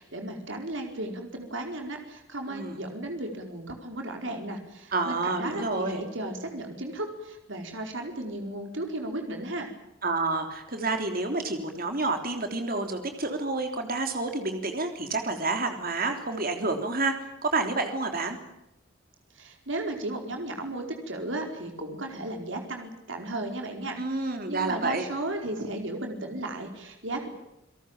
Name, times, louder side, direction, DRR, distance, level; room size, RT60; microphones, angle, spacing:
voice 1, 0.0-9.7 19.4-27.3, right 1 dB, 65° right, 3 dB, 4.8 m, -35 dB
voice 2, 2.5-2.8 4.9-6.0 10.0-17.2 17.4-18.4 24.0-25.1, right 3 dB, 45° right, 5 dB, 3.4 m, -29 dB
29.5 x 18.5 x 9.0 m, 0.86 s
head